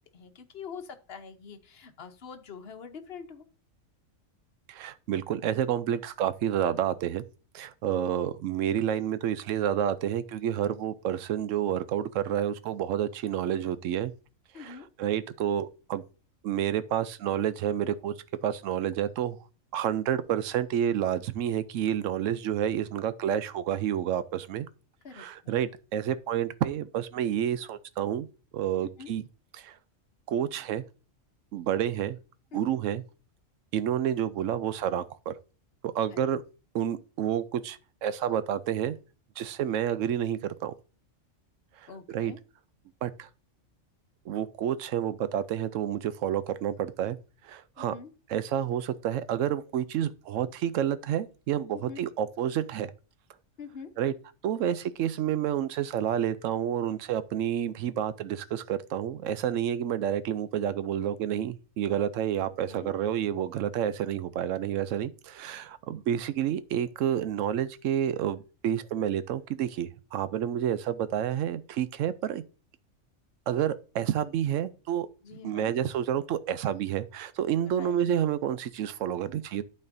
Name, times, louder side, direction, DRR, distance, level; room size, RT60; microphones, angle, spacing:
voice 1, 0.0-3.5 7.9-8.4 14.5-14.9 25.0-25.5 29.0-29.1 32.5-32.8 36.1-36.3 41.9-42.4 47.8-48.1 51.7-52.0 53.6-53.9 62.4-62.9 75.2-75.7 77.7-78.0, left 6 dB, 55° left, 1.0 m, -45 dB
voice 2, 4.7-7.2 7.5-14.1 14.6-16.0 16.4-18.1 18.4-19.4 19.7-24.7 25.1-28.3 28.5-29.2 29.5-29.8 30.3-30.8 31.5-32.2 32.5-33.0 33.7-35.3 35.8-36.4 36.7-39.0 39.4-40.7 41.8-41.9 42.1-42.3 43.0-43.3 44.3-47.2 47.4-47.9 48.3-52.9 54.0-54.1 54.4-72.4 73.5-75.1 75.4-79.6, right 10 dB, 75° right, 0.9 m, -29 dB
12.0 x 4.3 x 2.6 m
omnidirectional pair, 1.3 m